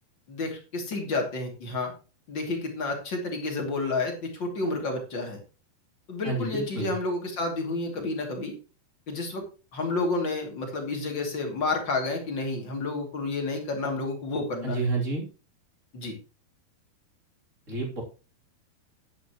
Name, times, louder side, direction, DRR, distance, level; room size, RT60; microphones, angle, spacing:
voice 1, 0.3-1.9 2.3-5.4 6.1-8.5 9.1-9.4 9.7-14.9 15.9-16.2, left 3 dB, 30° left, 2 dB, 2.7 m, -30 dB
voice 2, 6.2-6.9 14.6-15.2 17.7-18.0, right 3 dB, 20° right, 0 dB, 2.9 m, -29 dB
11.0 x 10.5 x 3.1 m, 0.33 s
omnidirectional pair, 5.0 m